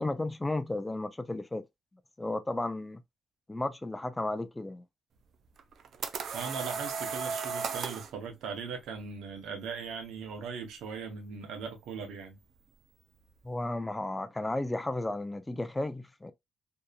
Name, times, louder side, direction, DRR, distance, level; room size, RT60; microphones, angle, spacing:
voice 1, 0.0-1.6 2.2-3.0 3.5-4.8 13.4-16.3, left 2 dB, 15° left, 0.4 m, -33 dB
sound 1, 5.6-8.1, right 6 dB, 60° right, 0.4 m, -35 dB
voice 2, 6.3-12.4, right 5 dB, 85° right, 0.8 m, -39 dB
2.7 x 2.4 x 2.2 m
cardioid pair, 90°, 0 cm